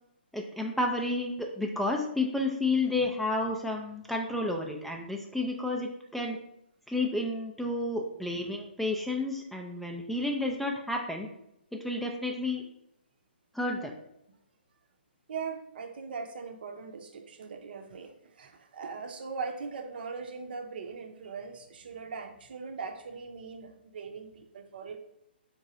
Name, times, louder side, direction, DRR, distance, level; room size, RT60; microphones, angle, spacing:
voice 1, 0.3-6.4 6.9-11.3 11.7-12.6 13.5-13.9, left 2 dB, ahead, 1 dB, 0.3 m, -31 dB
voice 2, 15.3-25.0, right 5 dB, 60° right, 6 dB, 0.6 m, -40 dB
3.6 x 3.1 x 3.8 m, 0.79 s
hypercardioid pair, 140°, 6 cm